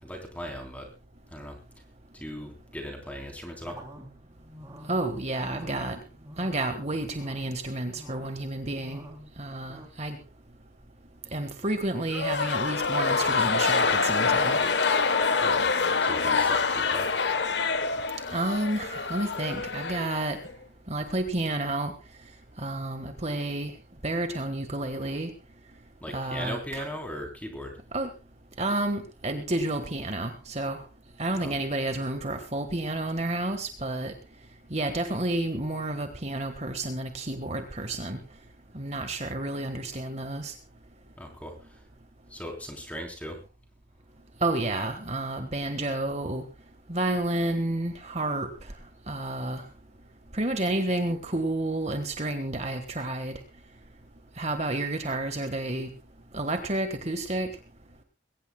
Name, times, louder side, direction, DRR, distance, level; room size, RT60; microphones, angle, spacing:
voice 1, 0.0-0.9 1.3-1.6 2.1-3.8 15.4-15.7 16.0-17.1 26.0-27.8 31.4-31.6 41.2-41.9 42.3-43.4, equal, 10° left, 2 dB, 3.6 m, -38 dB
sound 1, 3.6-9.9, equal, 15° right, 3.2 m, -48 dB
voice 2, 4.9-6.0 6.4-9.0 9.4-10.2 11.3-14.6 18.3-20.4 20.9-21.9 22.6-23.7 24.0-25.3 26.1-26.8 27.9-28.1 28.6-30.8 31.2-34.1 34.7-38.2 38.7-40.5 44.4-46.4 46.9-48.5 49.1-49.6 50.3-53.3 54.4-55.9 56.3-57.5, right 2 dB, 35° right, 7 dB, 1.5 m, -30 dB
sound 2, 12.1-20.5, left 4 dB, 60° left, 1.1 m, -26 dB
22.0 x 18.0 x 2.3 m, 0.28 s
head